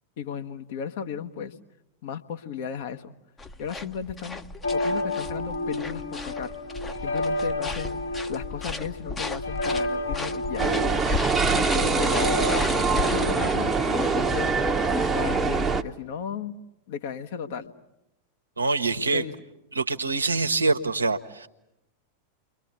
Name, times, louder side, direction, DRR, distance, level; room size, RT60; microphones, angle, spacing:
voice 1, 0.2-1.5 2.0-3.1 3.6-4.4 4.7-6.5 7.0-8.0 8.3-10.7 11.3-12.1 12.5-14.5 15.1-16.6 16.9-17.7 19.1-19.3, left 7 dB, 55° left, 6 dB, 1.3 m, -35 dB
sound 1, 3.4-13.6, left 3 dB, 15° left, 1.0 m, -35 dB
sound 2, 4.6-14.6, left 2 dB, 85° left, 4.6 m, -31 dB
sound 3, 10.6-15.8, right 4 dB, 10° right, 1.0 m, -24 dB
voice 2, 18.6-19.2 19.7-21.5, right 3 dB, 80° right, 7 dB, 1.1 m, -25 dB
29.5 x 23.0 x 8.1 m, 0.89 s
figure-of-eight pair, 90°, 0 cm